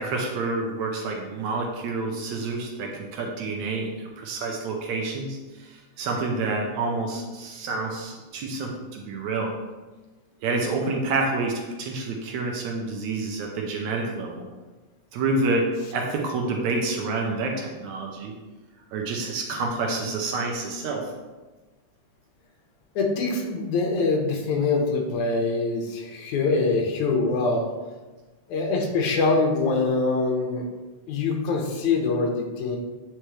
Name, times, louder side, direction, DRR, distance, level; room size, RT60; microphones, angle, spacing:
voice 1, 0.0-9.5 10.4-14.5 15.1-18.3 18.9-21.1, right 3 dB, 80° right, 1 dB, 2.1 m, -28 dB
voice 2, 23.0-27.7 28.5-30.7 31.1-32.8, left 3 dB, 85° left, 1 dB, 2.4 m, -24 dB
8.7 x 4.9 x 3.1 m, 1.2 s
omnidirectional pair, 3.4 m